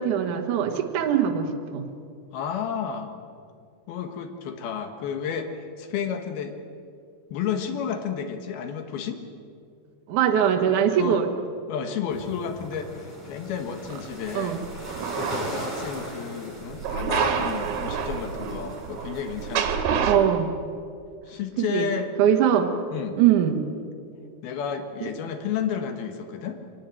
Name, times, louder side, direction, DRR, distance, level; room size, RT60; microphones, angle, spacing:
voice 1, 0.0-1.9 10.1-11.3 14.3-14.6 20.1-20.5 21.6-21.9 22.2-22.7 23.2-23.6 25.0-25.1, right 9 dB, 60° right, 4 dB, 2.6 m, -22 dB
voice 2, 2.3-3.1 3.9-6.6 7.3-9.2 10.9-11.3 11.7-14.6 15.2-20.1 21.3-22.1 22.9-23.2 24.4-26.6, left 7 dB, 75° left, 7 dB, 3.3 m, -31 dB
sound 1, 12.1-19.6, equal, 5° right, 6.6 m, -39 dB
sound 2, 14.5-15.9 16.8-20.2, right 7 dB, 75° right, 3.4 m, -28 dB
23.5 x 18.5 x 9.1 m, 2.3 s
omnidirectional pair, 4.5 m